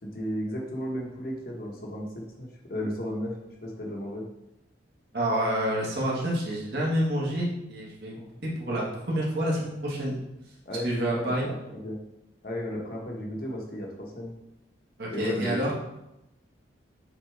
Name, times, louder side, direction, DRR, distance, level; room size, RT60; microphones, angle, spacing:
voice 1, 0.0-3.4 3.6-4.2 8.1-8.3 10.6-12.0 12.4-14.3 15.1-15.7, equal, 50° left, -1 dB, 1.3 m, -34 dB
voice 2, 5.1-10.1 10.8-11.5 15.0-15.7, right 1 dB, 55° right, -4 dB, 1.7 m, -28 dB
7.1 x 4.0 x 3.4 m, 0.91 s
head